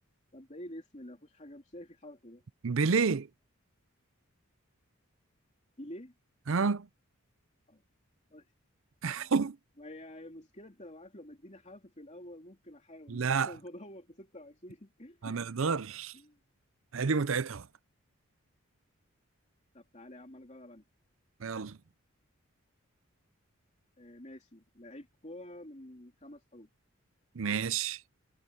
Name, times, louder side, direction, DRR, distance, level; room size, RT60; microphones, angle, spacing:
voice 1, 0.3-2.4 5.8-6.1 7.7-7.8 8.3-8.5 9.1-9.3 9.8-15.6 16.1-16.4 19.7-20.8 24.0-26.7, left 1 dB, 35° left, 3.1 m, -49 dB
voice 2, 2.6-3.3 6.5-6.9 9.0-9.6 13.1-13.5 15.2-16.1 16.9-17.7 21.4-21.8 27.3-28.0, right 5 dB, 70° right, 0.6 m, -29 dB
head